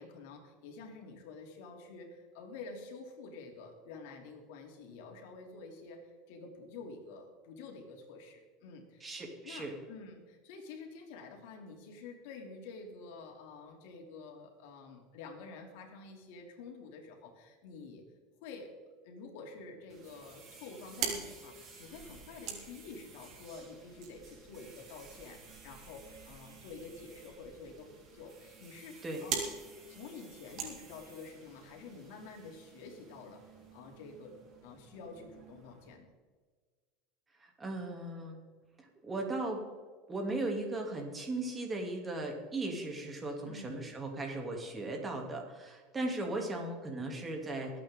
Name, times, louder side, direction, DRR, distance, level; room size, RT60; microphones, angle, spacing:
voice 1, 0.0-18.0 18.4-18.7 19.0-29.5 29.9-33.4 33.7-34.4 34.6-36.1 43.4-43.9, left 4 dB, 75° left, 2 dB, 2.9 m, -49 dB
voice 2, 9.0-9.7 29.0-29.2 37.4-38.4 39.0-39.6 40.1-47.8, right 2 dB, 20° right, 2 dB, 2.9 m, -37 dB
sound 1, 19.9-35.9, right 4 dB, 35° right, 4.3 m, -57 dB
sound 2, 20.6-31.5, right 6 dB, 55° right, 3.0 m, -44 dB
22.5 x 8.7 x 3.8 m, 1.5 s
supercardioid pair, 125°, 0 cm